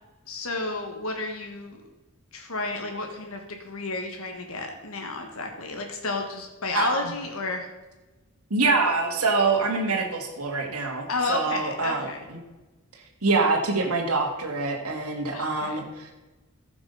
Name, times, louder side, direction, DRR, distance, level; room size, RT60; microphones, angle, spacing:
voice 1, 0.3-1.8 2.3-7.7 11.1-12.2 15.3-15.9, left 3 dB, 70° left, 3 dB, 1.6 m, -31 dB
voice 2, 8.5-12.4 13.2-16.1, right 3 dB, 85° right, 2 dB, 1.8 m, -25 dB
15.0 x 6.0 x 5.6 m, 1.1 s
head